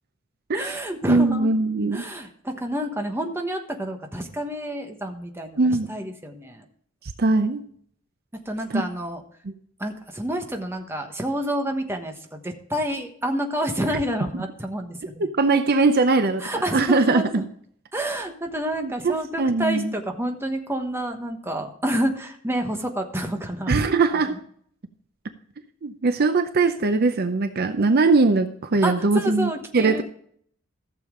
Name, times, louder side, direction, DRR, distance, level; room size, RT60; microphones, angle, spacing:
voice 1, 0.5-1.5 1.9-5.6 5.9-6.6 8.4-9.2 9.8-15.3 16.4-17.5 17.9-23.8 28.8-30.0, right 1 dB, 10° right, 4 dB, 1.2 m, -29 dB
voice 2, 1.1-2.0 5.6-5.9 7.2-7.6 8.7-8.8 15.4-16.4 16.7-17.4 18.8-19.9 23.7-24.3 25.8-30.0, right 3 dB, 50° right, 9 dB, 0.6 m, -21 dB
14.5 x 7.0 x 3.7 m, 0.62 s
head